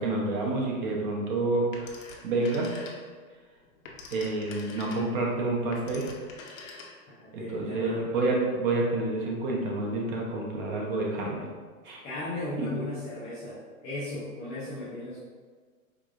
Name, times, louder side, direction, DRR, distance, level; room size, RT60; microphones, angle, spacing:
voice 1, 0.0-2.8 4.1-6.1 7.3-11.4 11.8-12.0 12.6-12.7, right 2 dB, 35° right, -2 dB, 0.7 m, -29 dB
Telephone, 1.7-3.3 3.6-7.2, left 4 dB, 65° left, 0.8 m, -45 dB
voice 2, 7.2-8.1 12.0-15.2, left 2 dB, 15° left, -12 dB, 0.4 m, -36 dB
4.8 x 2.5 x 2.4 m, 1.5 s
hypercardioid pair, 140°, 42 cm